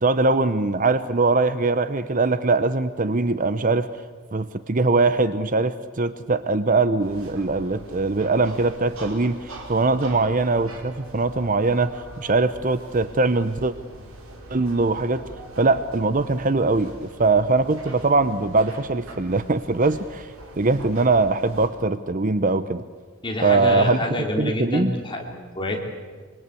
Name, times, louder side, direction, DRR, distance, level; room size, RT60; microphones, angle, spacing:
voice 1, 0.0-3.9 4.3-13.7 14.5-15.2 15.6-20.3 20.6-22.8 23.4-24.0 24.4-24.9, right 3 dB, 35° right, 13 dB, 0.7 m, -21 dB
sound 1, 7.0-21.7, right 1 dB, 75° right, 4.9 m, -42 dB
voice 2, 23.2-25.8, left 1 dB, 20° left, 1 dB, 3.4 m, -27 dB
25.5 x 23.0 x 8.4 m, 1.5 s
head